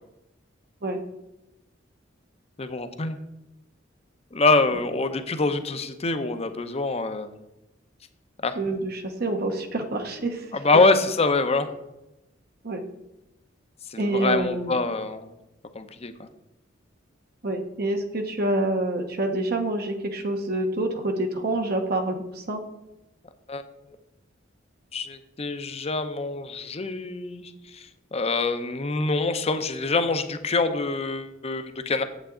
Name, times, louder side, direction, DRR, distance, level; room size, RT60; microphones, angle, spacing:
voice 1, 2.6-3.2 4.3-7.4 8.4-8.6 10.5-11.7 13.9-15.3 15.7-16.3 23.5-23.6 24.9-32.0, left 3 dB, 35° left, 9 dB, 0.7 m, -25 dB
voice 2, 8.5-10.5 12.6-12.8 14.0-14.8 17.4-22.6, right 1 dB, 55° right, 5 dB, 0.9 m, -27 dB
8.3 x 8.0 x 3.8 m, 0.94 s
head